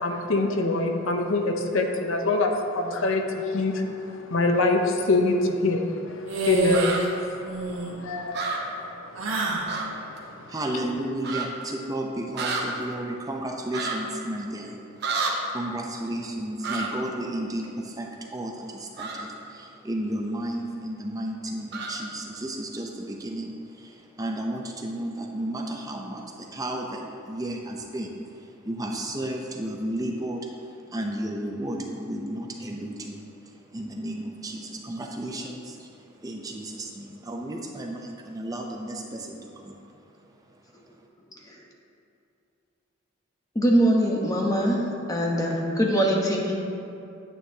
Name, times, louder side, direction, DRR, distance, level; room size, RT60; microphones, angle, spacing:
voice 1, 0.0-10.3, left 2 dB, 70° left, 4 dB, 0.7 m, -26 dB
sound 1, 6.3-7.1 7.4-7.9 9.2-9.7, right 3 dB, 75° right, 1.2 m, -26 dB
sound 2, 6.7-7.0 8.3-8.6 9.7-9.9 10.2-10.3 11.2-11.5 12.3-12.6 13.7-13.9 15.0-15.3 16.6-16.9 19.0-19.2 21.7-21.9, right 4 dB, 55° right, 0.9 m, -29 dB
voice 2, 10.5-14.7 15.5-23.5 23.8-28.1 28.7-30.4 30.9-33.2 33.7-35.9 36.2-39.8, right 1 dB, 15° right, 1 dB, 0.5 m, -33 dB
voice 3, 43.5-44.8 45.1-46.5, equal, 15° left, -1 dB, 0.9 m, -22 dB
9.2 x 9.1 x 2.8 m, 2.6 s
head